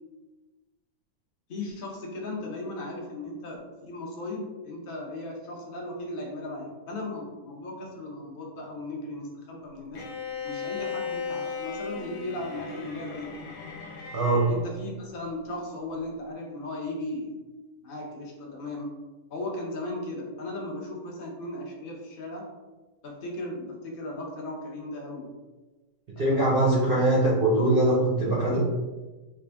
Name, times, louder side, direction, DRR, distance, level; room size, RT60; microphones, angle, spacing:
voice 1, 1.5-10.0 10.4-13.3 14.5-17.4 17.8-18.9 19.3-22.5 23.0-25.3 26.2-26.6, left 2 dB, 50° left, -1 dB, 0.7 m, -36 dB
Bowed string instrument, 9.9-14.6, left 5 dB, 80° left, 1.1 m, -36 dB
voice 2, 14.1-14.4 26.2-28.6, right 1 dB, 55° right, -6 dB, 0.6 m, -22 dB
3.3 x 2.4 x 3.3 m, 1.2 s
omnidirectional pair, 1.7 m